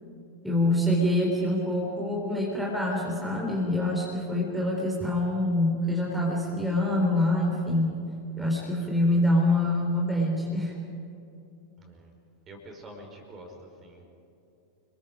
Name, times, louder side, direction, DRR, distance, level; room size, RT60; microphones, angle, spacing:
voice 1, 0.4-8.0 8.4-10.7, left 1 dB, 5° right, -3 dB, 3.8 m, -25 dB
voice 2, 11.8-12.1 12.5-14.1, right 1 dB, 25° right, 2 dB, 5.0 m, -46 dB
29.0 x 21.5 x 5.2 m, 2.8 s
figure-of-eight pair, 90°, 0 cm